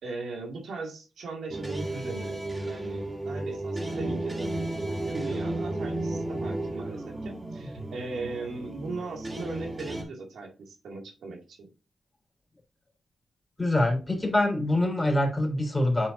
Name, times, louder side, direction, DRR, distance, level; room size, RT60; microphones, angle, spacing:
voice 1, 0.0-4.5 5.1-11.7, right 3 dB, 90° right, 1 dB, 2.3 m, -38 dB
sound 1, 1.5-10.0, right 2 dB, 25° right, 2.9 m, -33 dB
voice 2, 13.6-16.1, left 1 dB, 25° left, 2 dB, 3.6 m, -25 dB
8.2 x 4.8 x 2.6 m, 0.33 s
cardioid pair, 55°, 0 cm